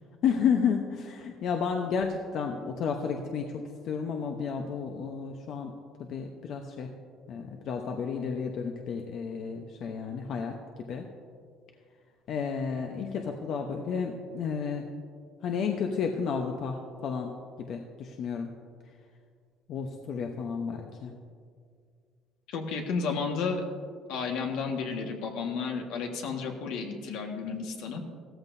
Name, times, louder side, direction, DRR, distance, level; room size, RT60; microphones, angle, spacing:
voice 1, 0.2-5.7 6.0-6.9 7.3-10.6 10.9-11.1 12.3-14.8 15.4-17.3 17.6-18.5 19.7-21.1, left 6 dB, 60° left, 3 dB, 0.9 m, -31 dB
voice 2, 22.5-23.6 24.1-28.0, left 5 dB, 80° left, 2 dB, 1.6 m, -32 dB
16.0 x 14.0 x 2.7 m, 2.1 s
cardioid pair, 115°, 0 cm